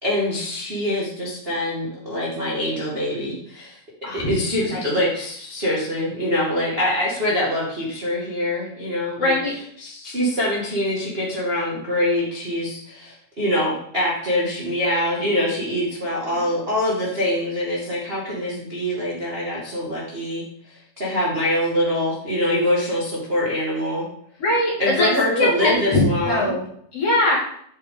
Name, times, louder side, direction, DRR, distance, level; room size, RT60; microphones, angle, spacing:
voice 1, 0.0-3.8 4.1-9.3 9.8-24.1 24.8-26.5, left 1 dB, 25° right, -5 dB, 1.4 m, -24 dB
voice 2, 9.2-9.5 16.3-16.5 24.4-26.6 26.9-27.4, left 1 dB, 40° left, -5 dB, 3.5 m, -21 dB
9.1 x 9.0 x 3.9 m, 0.66 s
omnidirectional pair, 4.7 m